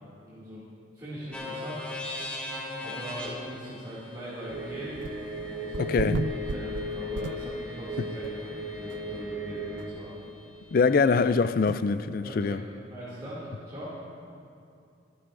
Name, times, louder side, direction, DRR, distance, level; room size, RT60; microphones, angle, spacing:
voice 1, 0.2-0.6 0.9-1.9 2.8-5.0 5.3-6.1 6.3-10.2 12.1-12.6 12.9-13.9, equal, 25° right, 2.5 m, -41 dB
sound 1, 1.3-9.2, left 2 dB, 5° left, 1.6 m, -41 dB
sound 2, 4.5-9.9, left 1 dB, 65° right, 1.6 m, -36 dB
sound 3, 5.0-5.4 5.7-7.8 8.2-8.3 8.9-9.0 9.2-9.3 9.8-9.9 11.7-11.8, right 4 dB, 85° right, 0.4 m, -34 dB
voice 2, 5.8-6.3 10.7-12.6, left 4 dB, 50° left, 0.4 m, -24 dB
25.0 x 11.0 x 2.6 m
head